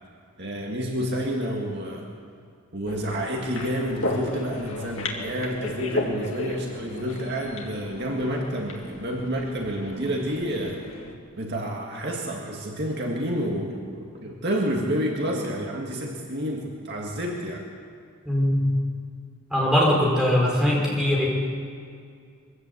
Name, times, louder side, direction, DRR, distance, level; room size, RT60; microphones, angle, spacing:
voice 1, 0.4-2.1 2.7-10.8 11.4-17.7, equal, 50° right, 0 dB, 2.0 m, -29 dB
sound 1, 2.9-11.1, left 2 dB, 60° left, 2.4 m, -34 dB
voice 2, 18.2-18.7 19.5-21.3, left 1 dB, 5° right, -4 dB, 4.9 m, -21 dB
22.5 x 15.0 x 8.3 m, 2.3 s
head